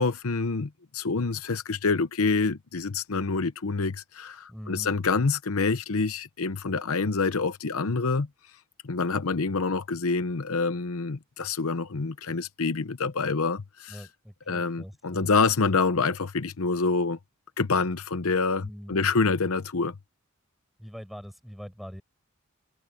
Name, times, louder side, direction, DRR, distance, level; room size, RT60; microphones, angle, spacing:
voice 1, 0.0-8.3 8.8-14.1 14.5-17.2 17.6-19.9, left 4 dB, 75° left, 0.8 m, -27 dB
voice 2, 4.5-4.9 13.9-15.3 18.6-19.1 20.8-22.0, equal, ahead, 7.1 m, -42 dB
head